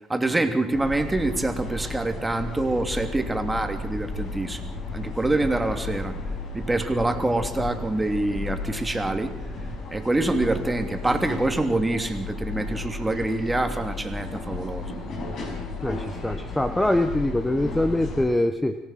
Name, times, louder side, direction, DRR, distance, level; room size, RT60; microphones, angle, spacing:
voice 1, 0.1-6.1 6.5-9.4 9.9-14.9, right 2 dB, 15° right, 6 dB, 3.0 m, -26 dB
sound 1, 0.7-18.2, left 3 dB, 60° left, 6.6 m, -34 dB
voice 2, 15.8-18.8, left 1 dB, 10° left, 9 dB, 1.3 m, -24 dB
25.5 x 17.5 x 5.9 m, 0.93 s
hypercardioid pair, 65°, 0 cm